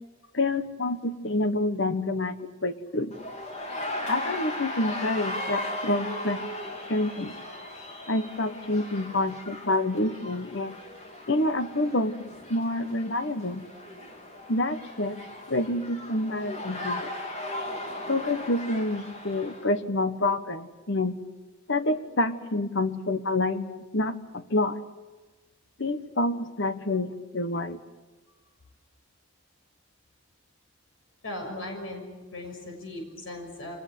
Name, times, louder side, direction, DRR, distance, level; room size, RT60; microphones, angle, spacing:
voice 1, 0.3-2.4 2.6-3.1 4.1-6.4 6.9-7.4 8.1-10.8 11.3-12.1 12.5-13.7 14.5-15.2 15.5-17.1 18.1-21.1 21.7-24.8 25.8-27.8, left 2 dB, 60° left, 11 dB, 1.4 m, -27 dB
sound 1, 3.1-19.7, left 1 dB, 35° left, 3.5 m, -37 dB
voice 2, 31.2-32.0 32.3-33.8, left 1 dB, 80° left, 2 dB, 6.3 m, -37 dB
25.5 x 20.0 x 8.4 m, 1.2 s
head